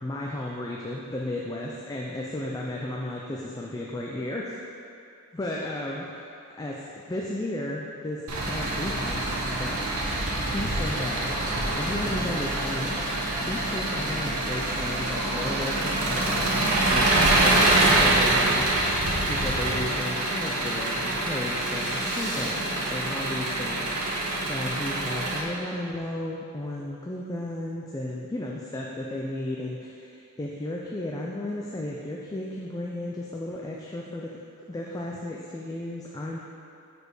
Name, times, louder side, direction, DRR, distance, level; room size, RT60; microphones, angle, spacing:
voice 1, 0.0-4.6 5.3-6.3 6.6-11.4 11.8-18.6 19.3-34.4 34.7-36.4, left 1 dB, 15° left, -3 dB, 0.4 m, -34 dB
Engine, 8.3-25.4, right 2 dB, 80° right, 1.1 m, -25 dB
sound 1, 21.3-22.5, left 2 dB, 35° left, 1.2 m, -40 dB
6.4 x 5.1 x 4.8 m, 2.6 s
head